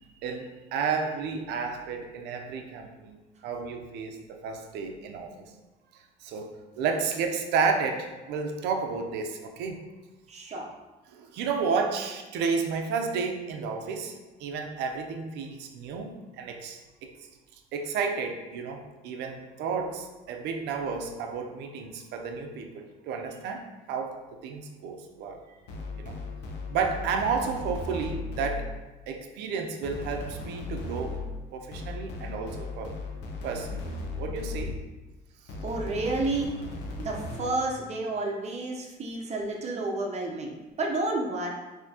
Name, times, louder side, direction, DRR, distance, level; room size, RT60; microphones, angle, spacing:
voice 1, 0.2-5.3 6.2-9.9 11.1-14.1 14.4-17.1 17.7-25.4 25.9-26.2 26.7-28.7 29.1-31.2 31.5-33.0 33.4-33.8 34.2-34.8, right 5 dB, 85° right, 4 dB, 0.6 m, -32 dB
voice 2, 10.3-10.7 27.9-28.0 35.6-36.5 37.0-41.5, right 2 dB, 40° right, 0 dB, 0.8 m, -30 dB
sound 1, 25.7-28.9 29.8-35.0 35.5-37.7, left 3 dB, 85° left, 0.7 m, -37 dB
5.6 x 2.8 x 2.8 m, 1.1 s
cardioid pair, 110°, 17 cm